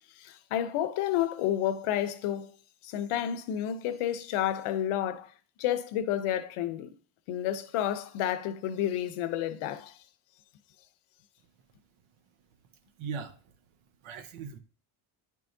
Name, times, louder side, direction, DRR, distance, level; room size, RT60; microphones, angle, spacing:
voice 1, 0.2-2.5 2.8-5.3 5.6-6.9 7.3-9.9, left 11 dB, 85° left, 0.8 m, -30 dB
voice 2, 13.0-13.6 14.0-14.6, right 5 dB, 75° right, 1.0 m, -39 dB
9.2 x 4.7 x 2.6 m
cardioid pair, 120°, 50 cm